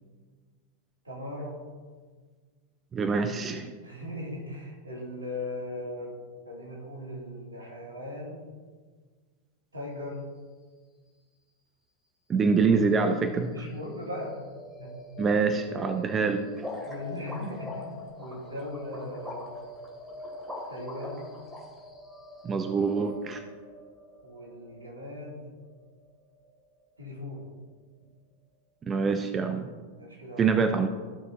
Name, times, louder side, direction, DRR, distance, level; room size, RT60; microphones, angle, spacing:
voice 1, 1.0-1.6 3.8-6.1 6.4-8.4 9.7-10.2 13.5-14.4 14.8-14.9 15.9-16.2 16.8-19.6 20.7-21.3 24.2-25.5 27.0-27.4 29.9-30.6, left 1 dB, 75° right, -3 dB, 2.6 m, -38 dB
voice 2, 2.9-3.8 12.3-13.5 15.2-16.5 22.4-23.4 28.8-29.7 30.4-30.9, right 5 dB, 20° right, 7 dB, 0.5 m, -25 dB
sound 1, 13.8-27.8, left 1 dB, 10° left, 1.5 m, -47 dB
sound 2, 16.5-21.6, left 2 dB, 5° right, 2.2 m, -41 dB
14.5 x 6.1 x 2.7 m, 1.5 s
figure-of-eight pair, 90°, 0 cm